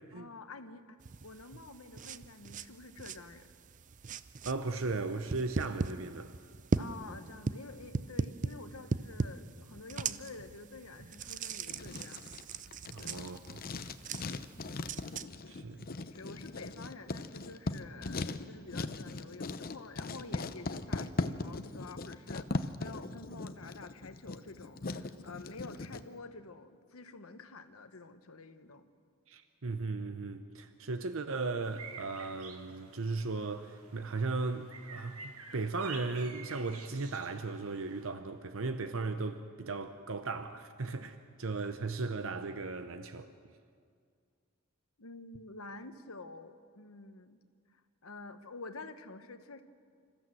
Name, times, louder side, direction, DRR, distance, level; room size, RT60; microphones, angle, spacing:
voice 1, 0.1-3.5 6.8-12.2 13.0-13.1 14.1-14.3 14.9-15.0 15.3-15.6 16.1-28.9 45.0-47.4 47.7-49.6, left 3 dB, 75° left, 1.2 m, -49 dB
sound 1, 1.0-15.3, right 4 dB, 35° right, 0.5 m, -39 dB
voice 2, 4.4-6.3 12.9-13.9 15.5-15.8 29.3-43.3, right 3 dB, 65° right, 0.8 m, -37 dB
Writing, 11.7-26.0, left 3 dB, 45° left, 0.7 m, -39 dB
sound 2, 31.6-38.1, right 5 dB, 85° right, 1.7 m, -50 dB
26.5 x 14.5 x 7.7 m
head